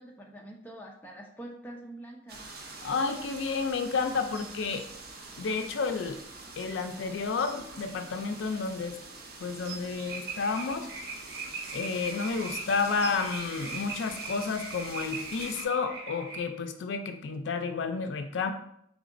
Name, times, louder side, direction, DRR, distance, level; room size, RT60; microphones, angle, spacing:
voice 1, 0.0-2.5, right 1 dB, 10° left, -1 dB, 0.4 m, -45 dB
sound 1, 2.3-15.6, right 3 dB, 50° right, 0.5 m, -45 dB
voice 2, 2.8-4.9 5.4-6.2 6.6-9.0 9.4-10.9 11.7-18.5, left 4 dB, 80° left, 7 dB, 0.4 m, -31 dB
sound 2, 10.1-16.4, right 3 dB, 75° right, 1.2 m, -40 dB
3.9 x 3.5 x 2.5 m, 0.72 s
head